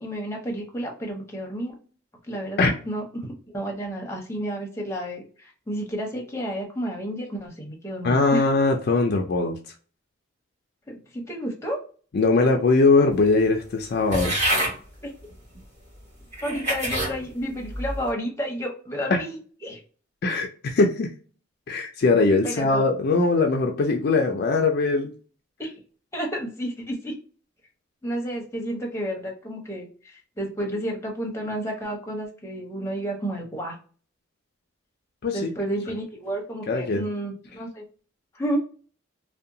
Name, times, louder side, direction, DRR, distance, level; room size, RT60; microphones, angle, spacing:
voice 1, 0.0-1.8 2.3-8.5 10.9-11.8 15.0-15.1 16.4-19.8 22.4-22.9 25.6-25.7 26.1-27.2 28.0-33.7 35.3-37.9 38.3-38.6, right 1 dB, 15° left, 0 dB, 0.7 m, -31 dB
voice 2, 8.0-9.6 12.1-14.3 19.1-19.2 20.2-21.1 21.7-25.1 35.2-35.5 36.7-37.0, left 3 dB, 50° left, 3 dB, 0.4 m, -21 dB
sound 1, 14.1-14.8 15.6-15.7 16.3-17.1 17.7-18.1, right 1 dB, 35° right, 1.4 m, -26 dB
2.7 x 2.1 x 2.6 m, 0.40 s
head